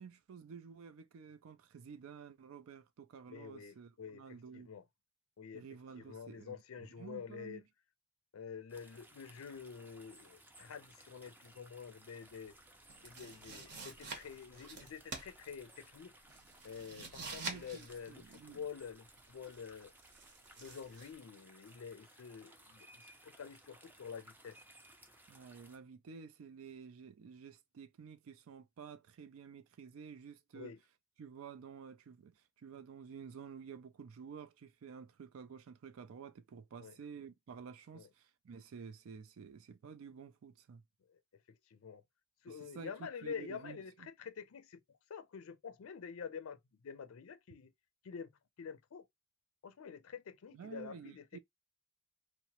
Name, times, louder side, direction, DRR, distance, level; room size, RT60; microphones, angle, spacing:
voice 1, 0.0-4.7 5.5-7.6 17.2-18.6 25.3-30.7 31.2-40.8 42.5-44.1 50.5-51.4, right 6 dB, 70° right, 0.4 m, -51 dB
voice 2, 3.3-4.2 4.5-4.8 5.4-5.6 6.0-7.6 8.3-12.5 13.0-16.1 16.6-19.9 20.6-24.6 30.5-30.8 36.8-36.9 37.9-38.1 41.1-41.2 41.7-42.0 42.4-44.8 45.1-46.6 46.8-47.7 48.0-48.3 48.6-49.0 49.6-51.4, left 6 dB, 75° left, 0.4 m, -48 dB
sound 1, 8.7-25.8, right 1 dB, 10° right, 0.4 m, -61 dB
sound 2, 12.3-21.1, right 4 dB, 55° right, 0.8 m, -49 dB
2.8 x 2.1 x 2.8 m
head